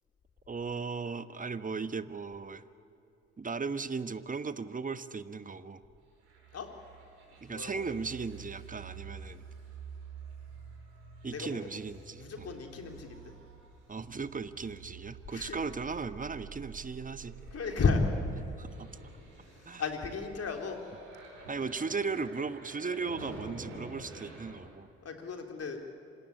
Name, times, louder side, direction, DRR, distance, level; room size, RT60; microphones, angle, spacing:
voice 1, 0.5-2.6 3.4-5.8 7.4-9.4 11.2-12.5 13.9-17.3 18.6-18.9 19.7-19.8 21.5-24.9, right 4 dB, 25° right, 13 dB, 1.2 m, -37 dB
sound 1, 6.2-24.6, right 5 dB, 75° right, 5.4 m, -49 dB
voice 2, 7.5-7.8 11.2-11.6 12.2-13.3 15.3-15.6 17.5-18.0 19.5-20.8 25.0-25.8, left 5 dB, 45° left, 3 dB, 3.7 m, -34 dB
26.0 x 17.5 x 9.7 m, 2.8 s
figure-of-eight pair, 45°, 35 cm